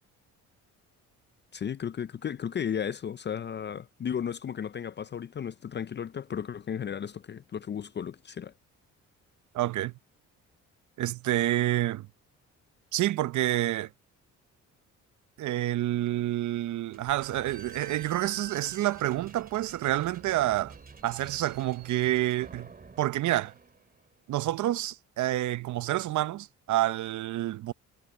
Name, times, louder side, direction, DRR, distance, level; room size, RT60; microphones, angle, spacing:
voice 1, 1.5-8.5, left 8 dB, 35° left, 0.5 m, -34 dB
voice 2, 9.5-9.9 11.0-12.1 12.9-13.9 15.4-20.8 21.0-22.7 23.0-23.5 24.3-27.7, right 14 dB, 75° right, 0.8 m, -28 dB
Slam / Squeak, 16.9-24.2, right 6 dB, 30° right, 2.4 m, -49 dB
cardioid pair, 90°, 30 cm